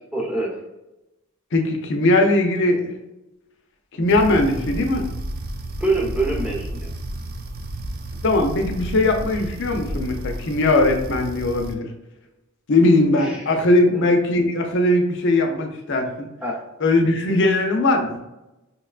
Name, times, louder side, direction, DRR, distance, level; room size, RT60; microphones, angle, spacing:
voice 1, 0.1-0.6 5.8-6.9 13.2-13.4 13.9-14.1 16.4-16.6, right 2 dB, 5° right, -3 dB, 0.8 m, -25 dB
voice 2, 1.5-2.9 3.9-5.1 8.2-11.9 12.7-16.3 16.8-18.2, left 2 dB, 60° left, 3 dB, 0.6 m, -19 dB
sound 1, 4.1-11.7, right 1 dB, 45° right, 0.3 m, -32 dB
5.4 x 2.2 x 2.4 m, 0.95 s
head